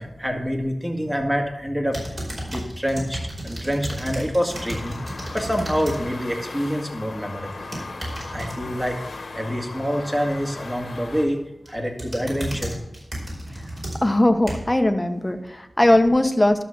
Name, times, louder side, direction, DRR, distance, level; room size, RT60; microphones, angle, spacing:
voice 1, 0.0-2.2 2.5-7.7 8.3-9.0 9.4-11.4 11.7-12.8, equal, 10° right, 2 dB, 2.2 m, -26 dB
sound 1, 1.9-6.0 6.4-6.7 7.5-8.6 10.9-11.3 11.7-14.8 15.4-15.5, right 1 dB, 40° right, 4.7 m, -33 dB
sound 2, 4.5-11.3, left 3 dB, 80° left, 1.4 m, -37 dB
voice 2, 14.0-16.6, left 1 dB, 20° left, 7 dB, 1.1 m, -19 dB
11.5 x 6.8 x 6.1 m, 0.88 s
wide cardioid pair, 60°, 0 cm